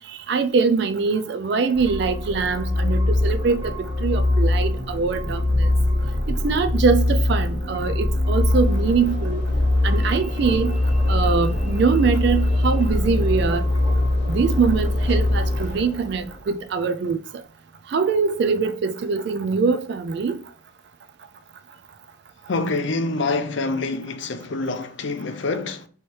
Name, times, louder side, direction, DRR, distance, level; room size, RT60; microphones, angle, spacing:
voice 1, 0.1-5.7 6.3-9.4 9.8-10.8 11.1-13.6 14.3-17.2 17.9-20.4, right 5 dB, 55° right, 0.3 m, -23 dB
sound 1, 1.7-15.6, left 1 dB, 25° right, 1.6 m, -22 dB
Train / Engine / Alarm, 8.4-16.7, equal, 35° left, 1.4 m, -36 dB
voice 2, 22.5-25.9, left 3 dB, 65° left, 0.5 m, -26 dB
3.1 x 3.0 x 4.4 m
head